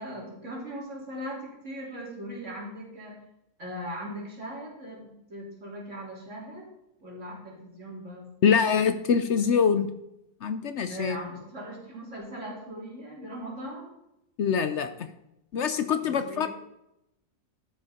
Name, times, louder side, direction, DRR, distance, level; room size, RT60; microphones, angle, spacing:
voice 1, 0.0-3.2 3.6-6.7 7.0-8.3 10.9-13.9 16.0-16.5, equal, 60° right, -3 dB, 3.8 m, -39 dB
voice 2, 8.4-9.9 10.4-11.2 14.4-15.1 15.5-16.5, left 6 dB, 60° left, 10 dB, 0.9 m, -24 dB
12.5 x 6.9 x 5.1 m, 0.83 s
omnidirectional pair, 1.4 m